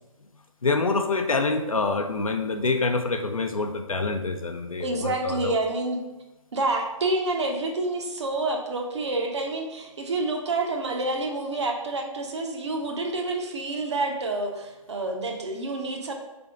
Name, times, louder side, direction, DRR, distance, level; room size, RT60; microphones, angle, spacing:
voice 1, 0.6-5.6, left 3 dB, 75° left, 5 dB, 0.6 m, -26 dB
voice 2, 4.8-6.0 6.5-16.1, right 2 dB, 55° right, 2 dB, 0.8 m, -28 dB
4.0 x 3.5 x 3.5 m, 1.1 s
figure-of-eight pair, 135°, 18 cm